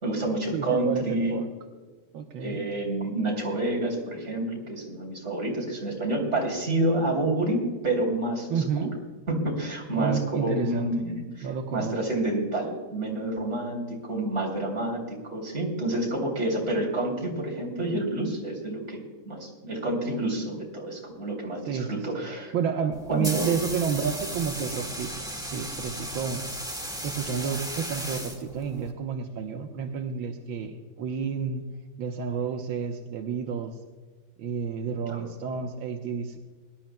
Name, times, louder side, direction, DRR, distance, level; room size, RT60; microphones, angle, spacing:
voice 1, 0.0-1.4 2.4-8.9 9.3-22.5 23.1-23.5 35.1-35.3, right 1 dB, 35° right, -1 dB, 3.5 m, -29 dB
voice 2, 0.5-1.5 2.1-2.7 8.5-8.9 9.9-10.9 11.4-12.0 21.7-22.3 22.5-26.5 27.0-31.6 32.0-33.7 34.4-36.4, right 6 dB, 80° right, 4 dB, 1.7 m, -30 dB
sound 1, 22.9-28.9, right 1 dB, ahead, 1.5 m, -35 dB
22.5 x 11.5 x 2.2 m, 1.4 s
omnidirectional pair, 2.2 m